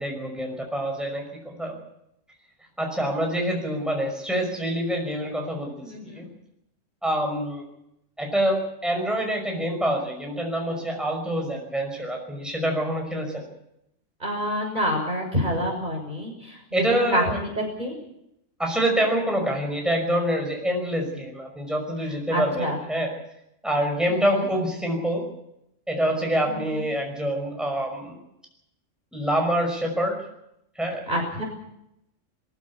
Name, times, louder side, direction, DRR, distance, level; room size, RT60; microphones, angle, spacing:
voice 1, 0.0-1.8 2.8-5.7 6.0-6.3 7.0-7.6 8.2-13.4 16.7-17.4 18.6-23.1 23.6-25.2 25.9-28.2 29.1-30.2 30.8-31.0, right 1 dB, ahead, 1 dB, 5.7 m, -26 dB
voice 2, 5.8-6.2 14.2-16.6 16.9-17.9 22.3-22.8 24.1-24.2 26.5-26.8 31.1-31.4, equal, 35° right, 0 dB, 6.4 m, -27 dB
22.5 x 15.5 x 8.6 m, 0.81 s
omnidirectional pair, 1.3 m